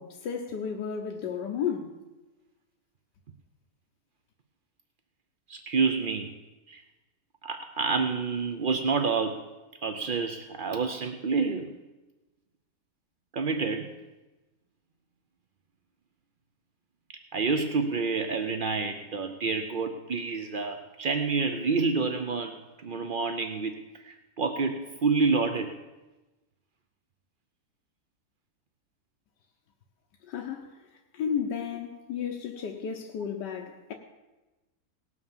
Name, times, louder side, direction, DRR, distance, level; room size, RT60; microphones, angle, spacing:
voice 1, 0.0-1.9 30.3-30.7 31.1-33.9, left 7 dB, 85° left, 2 dB, 1.6 m, -33 dB
voice 2, 5.5-6.3 6.7-6.8 7.4-9.4 9.8-11.7 13.3-13.9 17.3-25.7, right 4 dB, 55° right, 6 dB, 0.5 m, -28 dB
18.0 x 6.3 x 7.2 m, 1.1 s
omnidirectional pair, 1.8 m